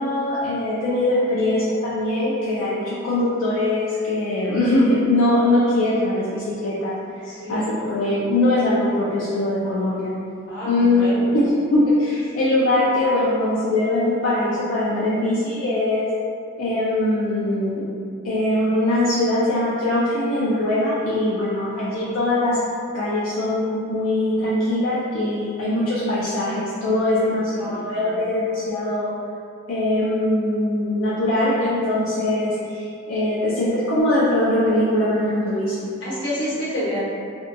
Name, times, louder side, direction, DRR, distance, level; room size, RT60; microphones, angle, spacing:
voice 1, 0.0-10.1 10.6-16.1 16.6-17.8 18.2-22.6 22.9-29.1 29.7-32.8 33.1-35.9, left 1 dB, 85° left, -8 dB, 0.4 m, -21 dB
voice 2, 7.2-7.7 10.5-11.1 27.6-28.0 36.0-37.0, equal, 65° left, -9 dB, 0.9 m, -28 dB
2.6 x 2.2 x 2.5 m, 2.4 s
head